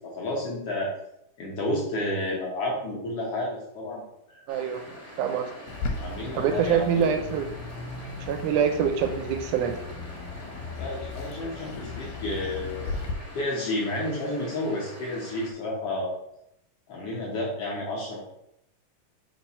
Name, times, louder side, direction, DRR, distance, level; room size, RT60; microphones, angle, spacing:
voice 1, 0.1-0.9 1.4-4.0 6.0-7.0 10.8-12.9 13.3-16.2 16.9-18.2, left 1 dB, 60° left, -3 dB, 1.6 m, -31 dB
sound 1, 4.5-15.5, equal, 10° left, 0.8 m, -45 dB
voice 2, 4.5-4.8 5.2-5.5 6.4-7.5 8.3-9.8, right 7 dB, 80° right, 6 dB, 2.0 m, -25 dB
Bird, 5.7-13.1, left 4 dB, 85° left, 2.3 m, -36 dB
4.7 x 4.5 x 5.4 m, 0.80 s
omnidirectional pair, 3.8 m